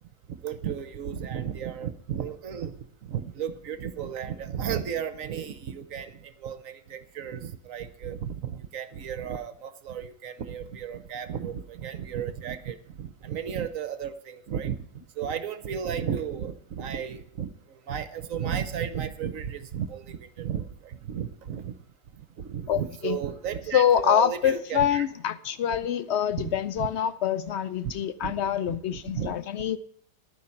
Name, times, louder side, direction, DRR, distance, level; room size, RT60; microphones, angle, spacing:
voice 1, 0.4-2.7 3.0-14.8 15.2-17.5 17.9-21.8 22.4-25.1 26.4-26.9 28.2-28.3 28.7-28.8 29.1-29.3, right 8 dB, 60° right, 12 dB, 1.1 m, -34 dB
voice 2, 22.7-23.2 23.7-29.8, left 9 dB, 75° left, 14 dB, 0.6 m, -25 dB
11.0 x 9.5 x 5.8 m, 0.63 s
omnidirectional pair, 1.8 m